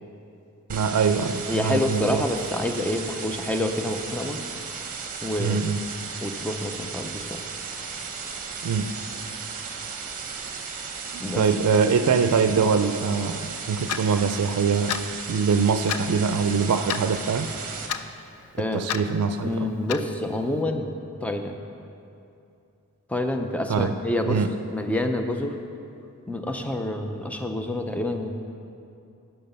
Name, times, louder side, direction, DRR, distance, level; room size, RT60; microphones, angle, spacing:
sound 1, 0.7-17.9, right 5 dB, 40° right, 0.9 m, -35 dB
voice 1, 0.7-2.2 5.4-5.8 8.6-8.9 11.1-15.0 15.3-17.5 18.7-19.7 23.7-23.9 24.3-24.5, right 5 dB, 90° right, 9 dB, 0.4 m, -23 dB
voice 2, 1.5-4.4 5.2-5.6 6.2-7.4 11.2-11.8 18.6-18.9 19.4-20.9 21.2-21.6 23.1-24.4 24.7-25.6 26.3-28.3, left 1 dB, 5° left, 5 dB, 0.5 m, -28 dB
Clock, 13.9-14.0 14.9-15.1 15.9-16.1 16.9-17.1 17.9-18.0 18.9-19.0 19.9-20.1, left 9 dB, 85° left, 0.4 m, -29 dB
10.5 x 5.7 x 5.4 m, 2.6 s
head